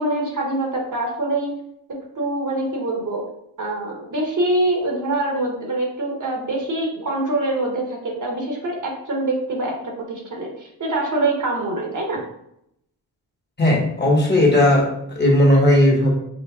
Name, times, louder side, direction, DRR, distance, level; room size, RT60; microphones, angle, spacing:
voice 1, 0.0-1.5 1.9-3.2 3.6-12.2, right 2 dB, 45° right, 0 dB, 1.2 m, -24 dB
voice 2, 13.6-16.1, left 1 dB, 25° left, -2 dB, 1.4 m, -16 dB
5.6 x 2.1 x 2.4 m, 0.76 s
supercardioid pair, 50°, 43 cm